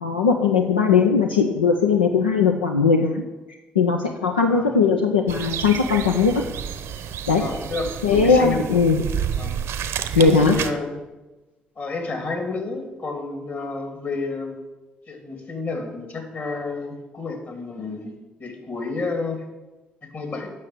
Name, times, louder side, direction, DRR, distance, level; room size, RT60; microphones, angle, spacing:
voice 1, 0.0-3.2 3.8-6.4 7.3-7.4 8.0-9.0 10.2-10.6, left 5 dB, 90° left, 2 dB, 0.6 m, -19 dB
voice 2, 4.5-4.8 7.4-8.6 9.4-9.5 10.2-11.0 11.8-14.6 15.1-18.1 18.4-19.4 20.0-20.5, left 3 dB, 45° left, 4 dB, 2.8 m, -30 dB
sound 1, 5.3-10.7, right 8 dB, 65° right, 0.8 m, -30 dB
8.5 x 6.3 x 8.1 m, 1.1 s
figure-of-eight pair, 45°, 5 cm